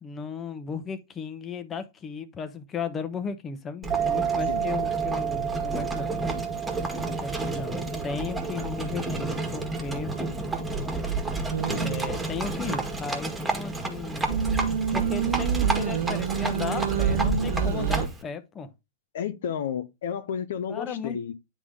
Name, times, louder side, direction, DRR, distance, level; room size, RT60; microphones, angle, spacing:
voice 1, 0.0-6.2 7.2-10.1 11.8-14.3 14.9-18.7 20.7-21.3, left 6 dB, 25° left, 1.0 m, -35 dB
Livestock farm animals working animals, 3.8-18.2, right 3 dB, 10° right, 1.7 m, -30 dB
sound 1, 3.9-10.9, right 9 dB, 25° right, 0.4 m, -32 dB
sound 2, 11.5-12.1 14.3-18.1, right 8 dB, 75° right, 1.0 m, -29 dB
voice 2, 19.1-21.3, left 8 dB, 65° left, 0.7 m, -32 dB
9.6 x 3.7 x 3.7 m
hypercardioid pair, 110°, 0 cm